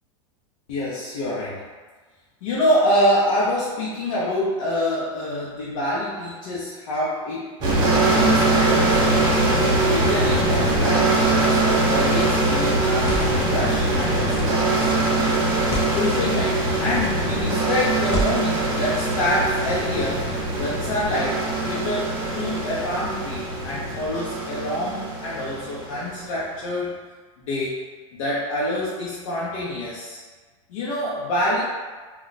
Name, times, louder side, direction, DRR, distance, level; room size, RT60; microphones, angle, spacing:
voice 1, 0.7-1.6 2.4-9.3 9.9-15.4 15.9-20.3 20.6-27.0 27.4-27.8 28.1-30.2 30.7-31.6, left 1 dB, 80° left, -7 dB, 0.7 m, -26 dB
sound 1, 7.6-26.2, right 2 dB, 25° right, 0.6 m, -22 dB
sound 2, 12.9-13.5 14.4-14.7 15.6-16.0 16.9-17.2 18.0-18.7, equal, 25° left, 0.5 m, -30 dB
2.3 x 2.2 x 3.9 m, 1.4 s
supercardioid pair, 155°, 16 cm